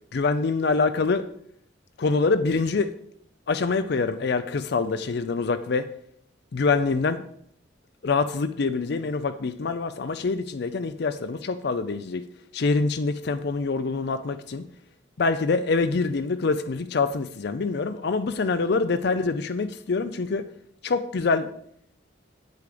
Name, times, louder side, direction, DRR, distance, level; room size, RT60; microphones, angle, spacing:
voice 1, 0.1-1.3 2.0-2.9 3.5-5.9 6.5-7.2 8.0-12.2 12.5-14.6 15.2-20.4 20.8-21.5, left 4 dB, 60° left, 11 dB, 0.5 m, -25 dB
8.3 x 8.2 x 5.0 m, 0.69 s
head